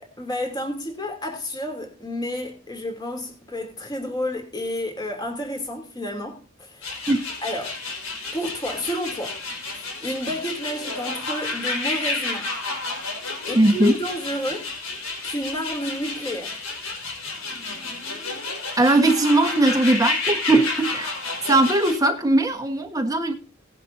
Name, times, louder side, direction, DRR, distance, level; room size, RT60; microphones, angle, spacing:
voice 1, 0.0-7.1 7.4-7.7 8.3-9.4 9.7-12.5 13.5-14.7 15.2-16.6, left 1 dB, 20° left, 2.9 m, -30 dB
sound 1, 6.8-22.0, left 3 dB, 90° left, 4.5 m, -31 dB
voice 2, 13.5-14.0 18.8-21.2 21.5-23.3, right 2 dB, 15° right, 1.2 m, -19 dB
18.0 x 10.5 x 2.7 m
head